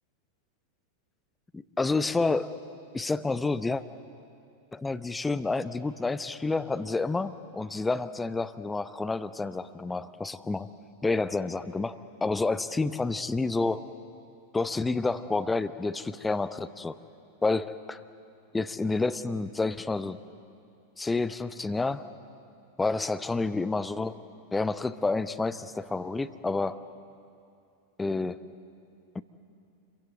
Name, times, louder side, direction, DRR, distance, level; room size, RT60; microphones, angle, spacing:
voice 1, 1.5-2.6 2.9-3.8 4.7-10.7 11.0-13.9 14.5-17.0 17.4-18.0 18.5-20.2 21.0-22.1 22.8-24.2 24.5-26.8 28.0-28.4 29.1-29.2, left 3 dB, 10° left, 12 dB, 0.8 m, -29 dB
26.5 x 23.5 x 8.0 m, 2.5 s
figure-of-eight pair, 90°, 0 cm